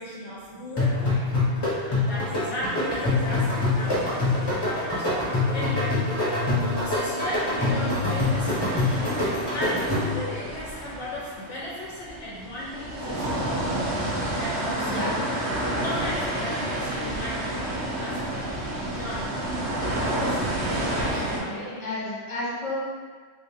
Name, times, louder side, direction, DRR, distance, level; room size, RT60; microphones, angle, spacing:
voice 1, 0.0-4.0 4.3-5.9 6.8-13.5 14.3-15.2 15.8-18.5 18.8-20.4 20.7-21.9, left 1 dB, 65° left, -7 dB, 0.9 m, -36 dB
sound 1, 0.8-10.3, left 2 dB, 20° left, 1.0 m, -25 dB
sound 2, 3.0-6.4 6.7-21.4, right 1 dB, 65° right, 1.0 m, -31 dB
voice 2, 14.8-15.2 21.1-22.8, left 2 dB, 40° left, -7 dB, 1.2 m, -32 dB
3.1 x 2.7 x 3.4 m, 1.5 s
omnidirectional pair, 1.3 m